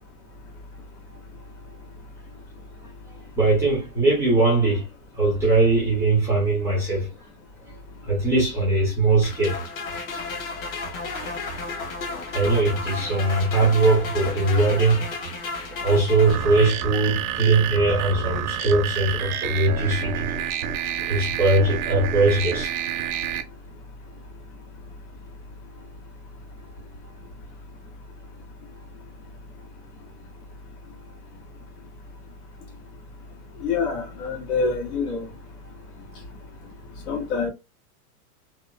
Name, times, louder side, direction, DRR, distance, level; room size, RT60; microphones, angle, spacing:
voice 1, 3.4-4.9 5.2-7.1 8.0-9.6 12.1-15.1 15.7-20.2 21.1-22.7, right 2 dB, 5° right, 0.3 m, -21 dB
sound 1, 9.2-17.0, left 3 dB, 60° left, 1.1 m, -33 dB
sound 2, 16.3-23.4, right 9 dB, 75° right, 0.6 m, -29 dB
voice 2, 33.6-35.3 37.1-37.5, left 4 dB, 85° left, 1.5 m, -26 dB
2.8 x 2.2 x 2.4 m
supercardioid pair, 150°, 45 cm